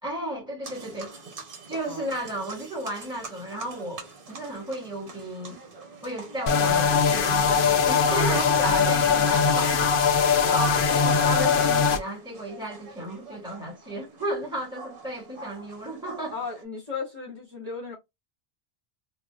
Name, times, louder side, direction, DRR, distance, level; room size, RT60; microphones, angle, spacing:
voice 1, 0.0-1.1 1.7-5.6 6.0-16.3, right 1 dB, 5° right, 1.6 m, -33 dB
sound 1, 0.6-16.6, right 4 dB, 55° right, 1.0 m, -46 dB
sound 2, 6.5-12.0, left 6 dB, 60° left, 0.7 m, -21 dB
voice 2, 10.9-11.4 16.3-17.9, left 5 dB, 40° right, 1.2 m, -35 dB
3.5 x 2.3 x 2.4 m
omnidirectional pair, 1.1 m